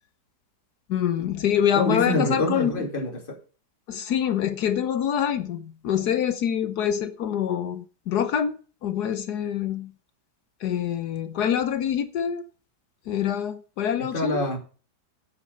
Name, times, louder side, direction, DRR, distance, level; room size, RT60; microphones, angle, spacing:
voice 1, 0.9-2.7 3.9-9.9 10.6-12.4 13.1-14.5, left 9 dB, 70° left, 1.4 m, -25 dB
voice 2, 1.8-3.4 14.1-14.6, left 1 dB, 30° left, 2.6 m, -26 dB
9.7 x 8.2 x 6.5 m
omnidirectional pair, 1.9 m